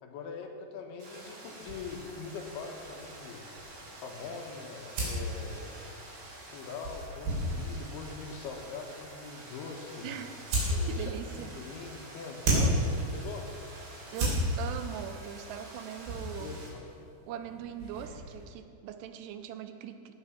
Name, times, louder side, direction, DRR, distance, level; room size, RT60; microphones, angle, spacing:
voice 1, 0.0-3.4 4.0-5.8 6.5-10.2 10.7-13.6 16.4-16.8, left 5 dB, 75° left, 3 dB, 3.0 m, -43 dB
sound 1, 1.0-16.7, right 1 dB, 45° right, 3.1 m, -48 dB
sound 2, 1.6-18.5, right 1 dB, 65° right, 5.4 m, -35 dB
voice 2, 10.0-10.4 10.8-11.5 14.1-16.6 17.2-20.1, right 9 dB, 90° right, 8 dB, 3.0 m, -41 dB
17.5 x 5.9 x 7.1 m, 2.4 s
omnidirectional pair, 4.8 m